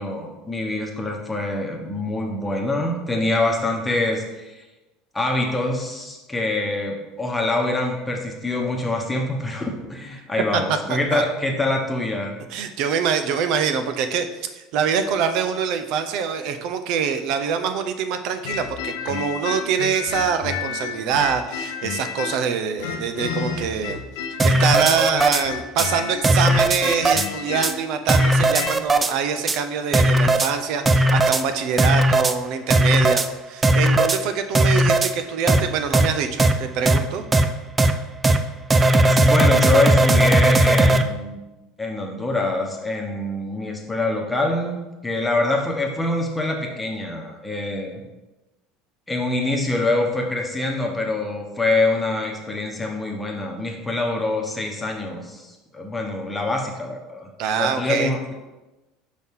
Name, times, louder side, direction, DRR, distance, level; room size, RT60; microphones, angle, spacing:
voice 1, 0.0-4.6 5.1-12.4 39.1-41.4 41.8-44.8 45.0-48.0 49.1-58.3, left 2 dB, 10° left, 0 dB, 1.1 m, -25 dB
voice 2, 10.5-11.2 12.5-24.0 24.4-37.2 57.4-58.1, right 6 dB, 60° right, 9 dB, 0.6 m, -24 dB
sound 1, 18.4-22.5 22.8-28.8, left 7 dB, 85° left, 0.8 m, -31 dB
sound 2, 24.4-25.4 25.8-25.9 26.2-27.3 27.6-27.7 28.1-29.1 29.5-29.6 29.9-30.5 30.9-31.4 31.8-32.3 32.7-33.3 33.6-34.2 34.5-35.1 35.5-35.6 35.9-36.1 36.4-36.5 36.9-37.0 37.3-37.4 37.8-37.9 38.2-38.4 38.7-41.0, right 1 dB, 15° right, 0.4 m, -17 dB
6.2 x 5.7 x 3.7 m, 1.1 s
supercardioid pair, 135°, 0 cm